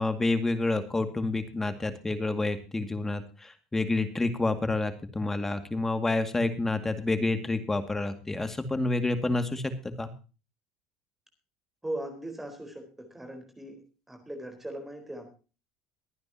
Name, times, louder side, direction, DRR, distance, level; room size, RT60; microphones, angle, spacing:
voice 1, 0.0-9.7 10.0-10.1, left 2 dB, 15° left, 9 dB, 2.1 m, -28 dB
voice 2, 11.8-13.8 14.1-15.3, right 1 dB, 10° right, 5 dB, 4.3 m, -39 dB
23.5 x 9.5 x 2.9 m, 0.34 s
supercardioid pair, 90°, 3 cm